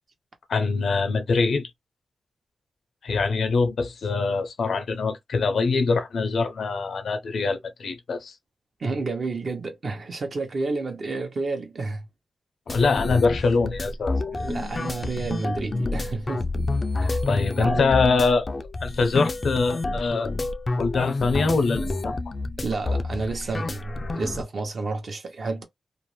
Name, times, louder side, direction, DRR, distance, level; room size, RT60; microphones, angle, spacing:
voice 1, 0.5-1.6 3.0-8.3 12.7-14.1 16.9-18.5 18.8-20.3 20.8-22.1, left 4 dB, 80° left, 0.6 m, -23 dB
voice 2, 8.8-12.0 14.2-16.5 17.0-17.9 22.6-25.6, right 3 dB, 55° right, 0.9 m, -30 dB
sound 1, 12.7-24.4, left 2 dB, 35° left, 0.3 m, -29 dB
2.5 x 2.0 x 3.0 m
wide cardioid pair, 95°, 0 cm